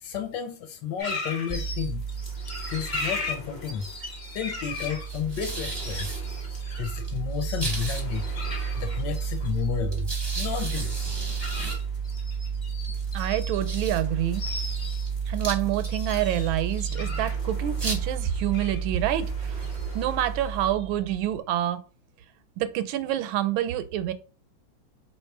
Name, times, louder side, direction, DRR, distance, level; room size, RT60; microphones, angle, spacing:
voice 1, 0.0-2.1 2.7-3.9 4.3-6.1 6.8-8.3 8.8-10.1 10.4-11.1, left 8 dB, 75° left, 1.2 m, -32 dB
sound 1, 1.0-20.7, left 3 dB, 35° left, 0.7 m, -39 dB
sound 2, 1.5-21.4, right 6 dB, 25° right, 0.5 m, -31 dB
voice 2, 13.1-14.4 15.3-19.7 19.9-21.8 22.6-24.1, right 12 dB, 85° right, 1.4 m, -27 dB
3.1 x 3.0 x 4.5 m
omnidirectional pair, 2.2 m